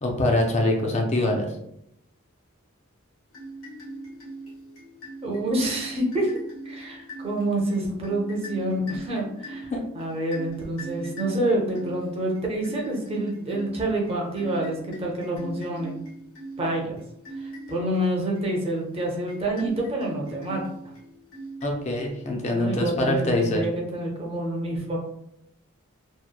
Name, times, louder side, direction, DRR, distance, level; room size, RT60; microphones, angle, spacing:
voice 1, 0.0-1.5 9.7-9.8 21.6-23.7, left 1 dB, 30° left, 1 dB, 0.4 m, -24 dB
sound 1, 3.3-22.5, right 1 dB, 75° left, 1.1 m, -41 dB
voice 2, 5.2-6.4 6.7-16.0 16.6-16.9 17.4-20.6 22.5-25.0, right 1 dB, 30° right, -1 dB, 0.5 m, -27 dB
2.8 x 2.1 x 2.2 m, 0.75 s
head